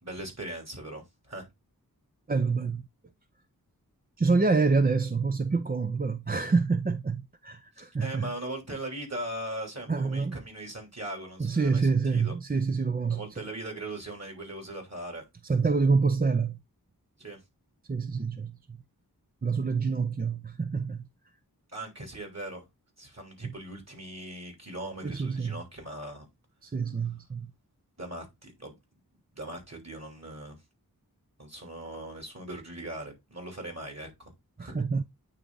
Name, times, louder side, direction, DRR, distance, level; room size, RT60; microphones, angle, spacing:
voice 1, 0.0-1.4 8.0-12.3 13.1-15.2 17.2-17.4 21.7-22.6 23.0-26.3 28.0-28.7 29.3-30.6 31.4-34.3 34.6-34.8, right 1 dB, 45° right, 3.1 m, -39 dB
voice 2, 2.3-2.8 4.2-8.3 9.9-10.4 11.4-13.2 15.4-16.6 17.9-18.8 19.4-21.0 23.4-23.5 25.0-25.6 26.6-27.5 34.6-35.0, right 4 dB, 25° right, 0.5 m, -27 dB
8.9 x 3.5 x 3.9 m
wide cardioid pair, 45°, 37 cm